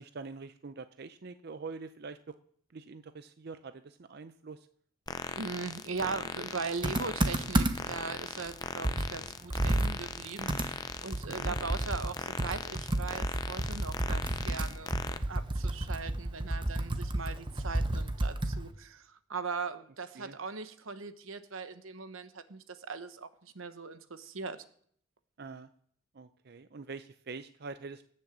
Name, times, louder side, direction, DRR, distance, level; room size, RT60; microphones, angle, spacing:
voice 1, 0.0-2.4 2.7-4.7 11.3-11.5 20.1-20.4 25.4-25.7 26.1-28.0, right 4 dB, 50° right, 11 dB, 0.6 m, -44 dB
sound 1, 5.1-15.2, left 4 dB, 20° left, 0.5 m, -39 dB
voice 2, 5.3-24.6, right 4 dB, 85° right, 11 dB, 1.1 m, -40 dB
Computer keyboard, 6.8-8.0 8.4-8.5 8.8-18.7, right 1 dB, 25° right, 0.9 m, -31 dB
18.0 x 6.5 x 7.4 m, 0.62 s
head